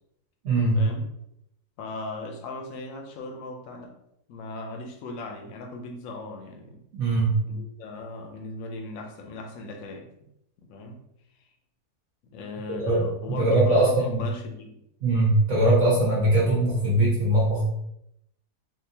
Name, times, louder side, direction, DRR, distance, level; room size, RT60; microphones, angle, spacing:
voice 1, 0.4-0.8 6.9-7.4 12.8-13.0 13.4-14.2 15.0-17.6, right 1 dB, 55° right, -6 dB, 1.2 m, -21 dB
voice 2, 1.8-3.9 4.3-6.8 7.4-10.3 10.6-11.0 12.2-14.8, left 2 dB, 70° left, 3 dB, 1.0 m, -38 dB
3.6 x 2.7 x 2.7 m, 0.79 s
omnidirectional pair, 1.6 m